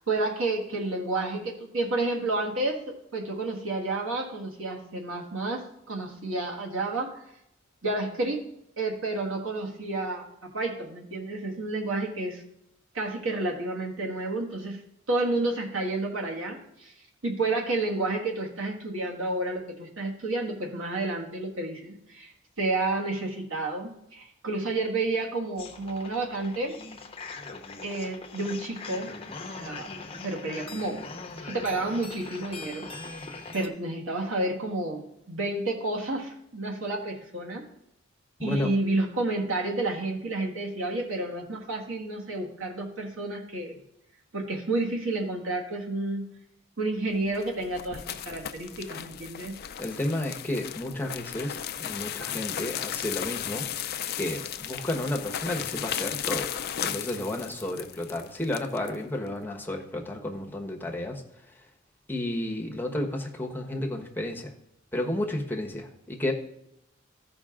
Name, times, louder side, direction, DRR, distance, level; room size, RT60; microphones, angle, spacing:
voice 1, 0.0-7.2 7.8-8.5 8.8-12.4 12.9-14.8 15.1-16.9 17.2-22.3 22.6-26.8 27.8-29.1 29.5-29.9 30.2-31.0 31.4-37.6 38.4-43.7 44.3-46.3 46.8-49.6, right 2 dB, 90° right, 0 dB, 1.6 m, -30 dB
sound 1, 25.6-33.7, left 3 dB, 30° left, 0.8 m, -41 dB
voice 2, 38.4-38.7 49.8-53.7 54.1-56.5 56.8-61.2 62.1-64.5 64.9-66.3, left 1 dB, 10° left, 1 dB, 1.1 m, -32 dB
sound 2, 47.2-58.9, left 10 dB, 50° left, 0.4 m, -35 dB
14.0 x 5.2 x 3.7 m, 0.79 s
head